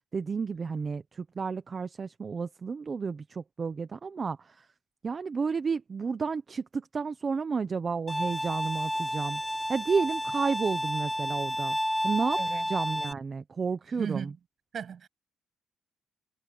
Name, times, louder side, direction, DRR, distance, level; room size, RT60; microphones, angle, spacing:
voice 1, 0.1-4.7 5.0-9.4 9.7-11.8 12.0-12.4 12.7-14.3, right 5 dB, 40° right, 1.1 m, -31 dB
Bowed string instrument, 8.1-13.1, equal, ahead, 0.8 m, -31 dB
voice 2, 13.9-14.3 14.7-15.1, right 7 dB, 55° right, 8.0 m, -36 dB
cardioid pair, 90°, 0 cm